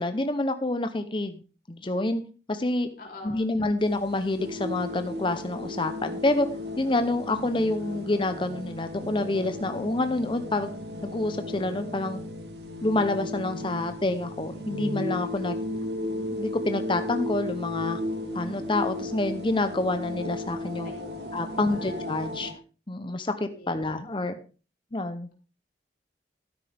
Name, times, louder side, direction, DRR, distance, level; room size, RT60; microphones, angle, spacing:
voice 1, 0.0-1.4 1.7-2.2 2.5-2.9 3.2-6.5 6.8-10.7 11.0-12.2 12.8-15.6 16.3-18.0 18.3-20.9 21.3-22.5 22.9-24.4 24.9-25.3, left 2 dB, 30° left, 8 dB, 0.8 m, -27 dB
voice 2, 3.0-3.5 15.4-15.5 20.8-21.3 21.5-22.0 23.5-24.0, left 2 dB, 55° left, -1 dB, 3.5 m, -45 dB
sound 1, 3.8-22.5, left 1 dB, 70° right, 2.0 m, -35 dB
12.5 x 9.8 x 3.5 m, 0.35 s
head